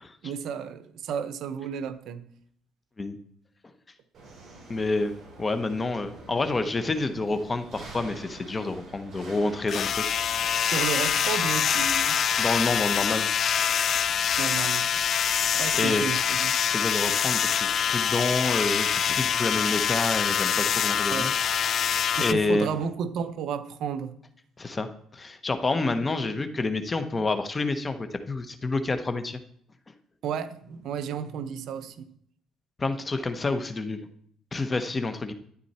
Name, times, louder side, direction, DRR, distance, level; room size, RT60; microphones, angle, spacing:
voice 1, 0.2-2.3 10.7-12.2 14.4-14.9 15.5-16.6 21.1-21.4 22.1-24.1 30.2-32.1, right 7 dB, 65° right, 12 dB, 0.9 m, -32 dB
sound 1, 4.1-22.8, right 2 dB, 45° right, 6.0 m, -48 dB
voice 2, 4.7-10.2 12.4-13.3 15.7-16.0 16.6-21.3 21.7-22.7 24.6-29.4 32.8-34.0 34.5-35.3, left 3 dB, 20° left, 9 dB, 1.1 m, -28 dB
sound 2, 9.7-22.3, left 8 dB, 50° left, 0.4 m, -25 dB
12.5 x 9.5 x 4.3 m, 0.64 s
cardioid pair, 125°, 0 cm